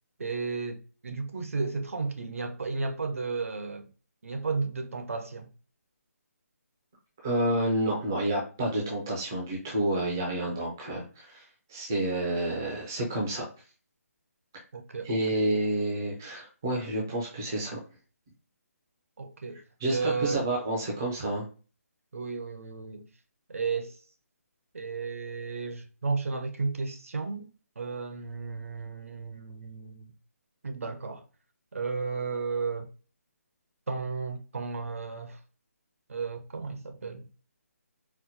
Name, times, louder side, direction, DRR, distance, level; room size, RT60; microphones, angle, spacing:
voice 1, 0.2-3.9 4.2-5.5 10.5-10.6 14.7-15.5 19.2-19.6 19.9-20.4 22.1-23.1 23.5-24.0 24.7-27.5 27.8-30.1 30.6-31.2 31.7-32.9 33.9-35.4 36.1-37.3, right 4 dB, 60° right, 0.6 m, -33 dB
voice 2, 7.2-11.4 11.7-13.5 15.0-17.8 19.8-21.4, right 1 dB, 10° right, 0.4 m, -29 dB
4.2 x 2.1 x 2.6 m
hypercardioid pair, 180°, 8 cm